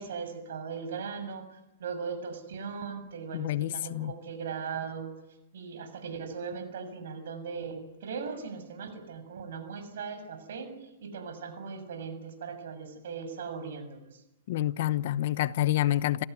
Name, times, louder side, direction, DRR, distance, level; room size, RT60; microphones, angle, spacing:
voice 1, 0.0-5.1 5.5-14.0, right 5 dB, 75° right, 6.7 m, -39 dB
voice 2, 3.3-4.1 14.5-16.2, left 14 dB, 60° left, 0.9 m, -28 dB
28.5 x 15.0 x 9.4 m
hypercardioid pair, 140°, 0 cm